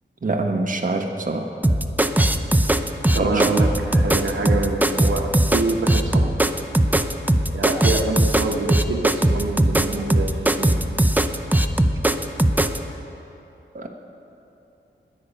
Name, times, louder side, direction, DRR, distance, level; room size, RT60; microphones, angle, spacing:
voice 1, 0.2-1.5 3.2-3.5 13.7-13.9, right 2 dB, 40° right, 2 dB, 1.2 m, -24 dB
sound 1, 1.6-12.8, right 1 dB, 10° right, 0.6 m, -19 dB
voice 2, 3.1-6.3 7.5-10.8, right 3 dB, 90° right, 2 dB, 1.1 m, -26 dB
21.0 x 8.6 x 5.5 m, 2.9 s
wide cardioid pair, 85°, 20 cm